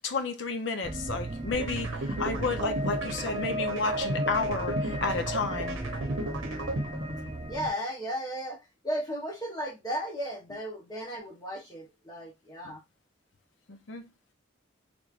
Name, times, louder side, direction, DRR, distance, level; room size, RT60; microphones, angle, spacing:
voice 1, 0.0-5.8 13.7-14.1, left 4 dB, 60° left, 0.7 m, -32 dB
sound 1, 0.8-7.7, right 1 dB, 20° right, 0.4 m, -35 dB
sound 2, 1.5-7.5, right 2 dB, 70° right, 0.8 m, -35 dB
voice 2, 7.5-12.8, equal, 20° left, 0.9 m, -35 dB
3.4 x 3.1 x 2.4 m
head